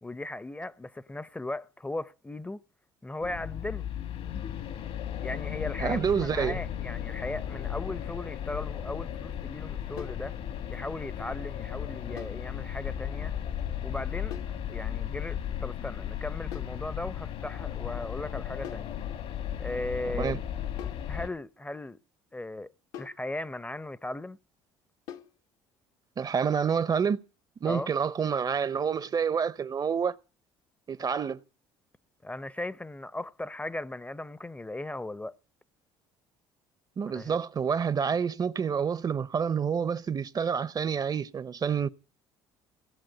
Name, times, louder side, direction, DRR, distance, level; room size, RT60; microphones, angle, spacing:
voice 1, 0.0-2.6 3.0-3.9 5.2-10.3 10.7-13.3 13.8-14.3 14.7-18.9 19.6-20.3 21.1-22.0 22.3-22.7 23.0-24.4 27.6-27.9 32.2-35.4 37.1-37.4, left 2 dB, 10° left, 0.6 m, -37 dB
sound 1, 3.2-21.3, left 10 dB, 60° left, 1.5 m, -35 dB
voice 2, 5.8-6.6 20.2-20.4 26.2-27.2 27.6-30.1 30.9-31.4 37.0-41.9, right 6 dB, 35° right, 0.7 m, -28 dB
sound 2, 10.0-10.3 12.2-12.5 14.3-14.6 16.5-16.8 18.6-18.9 20.8-21.1 22.9-23.3 25.1-25.4, left 9 dB, 80° left, 1.3 m, -43 dB
17.5 x 7.4 x 8.9 m
supercardioid pair, 70°, 11 cm